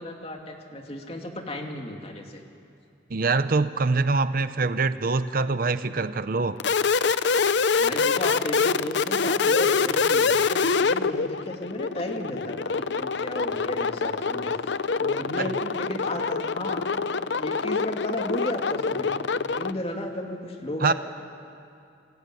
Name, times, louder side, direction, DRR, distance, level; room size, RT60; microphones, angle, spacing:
voice 1, 0.0-2.4 7.8-14.6 15.0-16.9 17.4-19.1 19.5-20.9, left 1 dB, 30° left, 3 dB, 2.6 m, -34 dB
voice 2, 3.1-6.6 15.4-15.5 20.8-20.9, right 3 dB, 50° right, 12 dB, 0.7 m, -24 dB
sound 1, 6.6-19.7, left 5 dB, 65° left, 0.6 m, -25 dB
30.0 x 20.0 x 9.2 m, 2.5 s
head